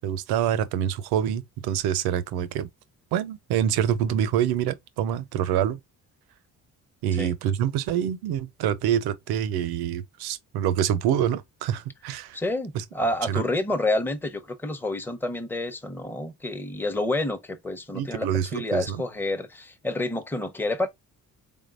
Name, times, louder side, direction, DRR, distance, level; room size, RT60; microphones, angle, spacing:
voice 1, 0.0-2.7 3.1-5.8 7.0-12.4 12.7-12.8 13.3-13.5 17.9-19.0, right 10 dB, 85° right, 0.7 m, -26 dB
voice 2, 12.3-18.3 18.5-20.9, left 2 dB, 5° left, 0.8 m, -28 dB
3.6 x 3.5 x 2.4 m
cardioid pair, 75°, 37 cm